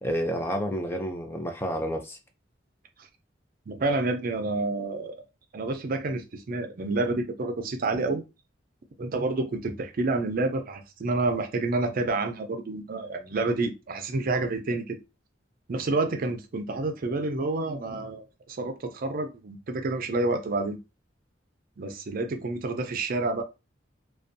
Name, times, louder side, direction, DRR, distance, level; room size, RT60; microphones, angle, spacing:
voice 1, 0.0-2.2, equal, 15° left, 0.3 m, -30 dB
voice 2, 3.7-5.2 5.5-8.2 9.0-15.0 15.7-20.8 21.8-23.4, right 2 dB, 50° right, 0.4 m, -29 dB
2.5 x 2.2 x 2.5 m
head